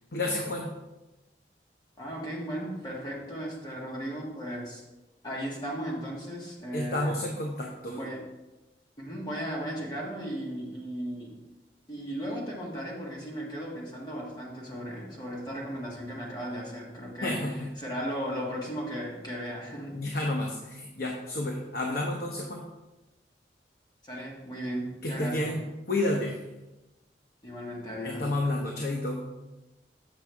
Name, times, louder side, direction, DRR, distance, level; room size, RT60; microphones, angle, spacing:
voice 1, 0.1-0.7 6.7-8.0 17.2-17.7 19.9-22.6 25.0-26.4 28.0-29.3, left 1 dB, 60° left, 0 dB, 0.9 m, -30 dB
voice 2, 2.0-4.8 5.2-7.1 7.9-8.2 9.0-11.4 11.9-17.4 17.8-20.0 24.0-25.5 27.4-28.3, equal, 25° left, -4 dB, 1.7 m, -36 dB
8.0 x 6.0 x 3.5 m, 1.0 s
head